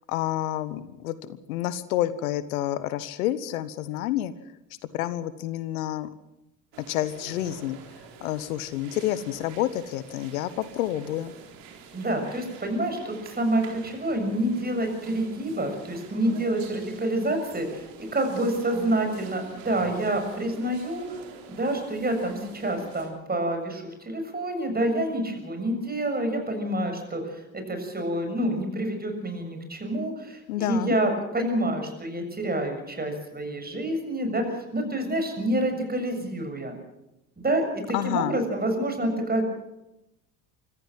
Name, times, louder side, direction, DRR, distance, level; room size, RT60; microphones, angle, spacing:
voice 1, 0.1-4.3 4.9-6.1 6.9-7.8 8.2-11.3 30.5-30.9 37.9-38.3, left 13 dB, 75° left, 15 dB, 1.2 m, -29 dB
sound 1, 6.7-23.1, right 6 dB, 70° right, 4.1 m, -47 dB
voice 2, 11.9-21.2 21.6-36.7 37.4-39.5, right 1 dB, 20° right, 5 dB, 7.1 m, -28 dB
25.5 x 14.5 x 7.6 m, 0.91 s
hypercardioid pair, 65°, 42 cm